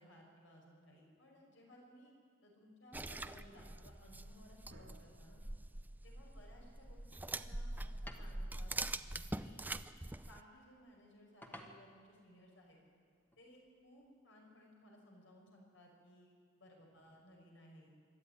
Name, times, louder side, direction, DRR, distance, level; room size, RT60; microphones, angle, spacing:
voice 1, 0.0-2.1 2.4-5.4 6.0-8.7 9.4-9.7 10.3-12.8 13.4-17.9, equal, 75° left, 0 dB, 6.2 m, -61 dB
sound 1, 2.9-10.4, right 2 dB, 10° right, 0.5 m, -44 dB
sound 2, 3.3-14.1, equal, 10° left, 1.4 m, -62 dB
sound 3, 4.7-8.2, right 1 dB, 70° right, 2.0 m, -66 dB
25.0 x 12.5 x 9.9 m, 2.1 s
head